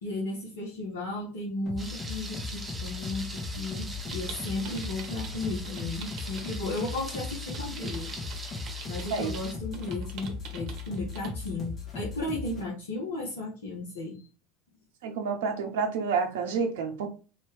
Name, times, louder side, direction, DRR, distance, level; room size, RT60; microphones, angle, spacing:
voice 1, 0.0-8.1 8.9-14.2, left 2 dB, 80° left, -3 dB, 1.1 m, -35 dB
sound 1, 1.7-12.6, left 4 dB, 35° left, 1.4 m, -38 dB
Thunder, 1.8-9.5, right 2 dB, 15° right, 0.8 m, -42 dB
sound 2, 4.1-11.5, right 6 dB, 55° right, 0.9 m, -47 dB
voice 2, 15.0-17.1, right 5 dB, 70° right, 4 dB, 0.6 m, -29 dB
3.1 x 2.9 x 3.2 m, 0.34 s
hypercardioid pair, 80°, 0 cm